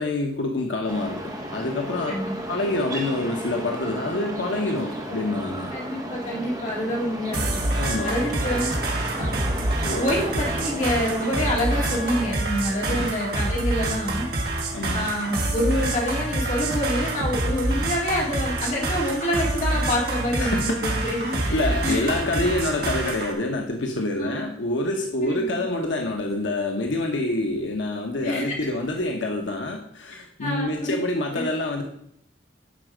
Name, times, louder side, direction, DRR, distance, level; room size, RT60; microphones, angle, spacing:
voice 1, 0.0-2.1 2.5-5.7 7.7-8.1 9.8-10.1 12.9-13.1 14.7-15.1 20.4-31.8, left 2 dB, 80° left, 2 dB, 1.0 m, -27 dB
sound 1, 0.9-12.3, right 1 dB, 20° right, 1.1 m, -34 dB
voice 2, 5.7-7.4 8.0-8.7 9.2-9.3 10.0-14.3 14.9-22.5 24.2-24.5 25.2-25.6 28.2-28.6 30.4-31.0 31.3-31.5, equal, 40° left, -2 dB, 2.3 m, -27 dB
sound 2, 7.3-23.3, right 2 dB, 55° right, 1.6 m, -27 dB
11.5 x 4.4 x 5.0 m, 0.72 s
head